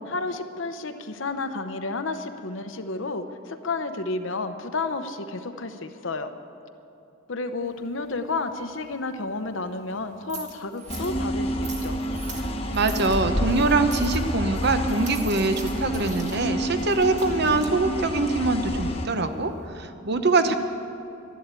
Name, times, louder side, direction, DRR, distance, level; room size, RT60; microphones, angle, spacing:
voice 1, 0.1-6.3 7.3-12.0, left 3 dB, 65° left, 8 dB, 0.9 m, -31 dB
sound 1, 7.6-19.7, right 4 dB, 35° right, 1.7 m, -45 dB
sound 2, 10.9-19.1, equal, 30° left, 1.0 m, -28 dB
voice 2, 12.7-20.6, right 3 dB, 55° right, 9 dB, 0.9 m, -23 dB
13.0 x 11.5 x 8.3 m, 2.9 s
head